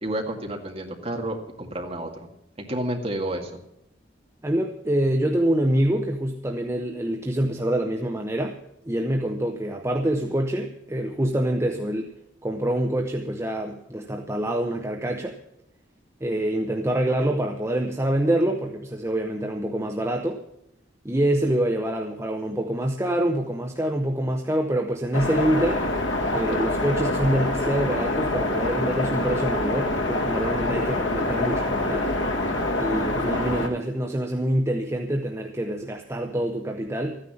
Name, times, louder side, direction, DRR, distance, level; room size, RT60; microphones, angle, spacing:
voice 1, 0.0-2.1 2.6-3.5, right 1 dB, 30° right, 2 dB, 2.0 m, -30 dB
voice 2, 4.4-8.6 8.8-12.1 12.4-15.4 16.2-20.4 21.0-25.8 26.3-32.1 32.8-37.2, right 1 dB, 15° right, 3 dB, 0.8 m, -26 dB
sound 1, 25.1-33.7, left 2 dB, 75° left, 1.9 m, -25 dB
14.0 x 9.9 x 7.1 m, 0.81 s
head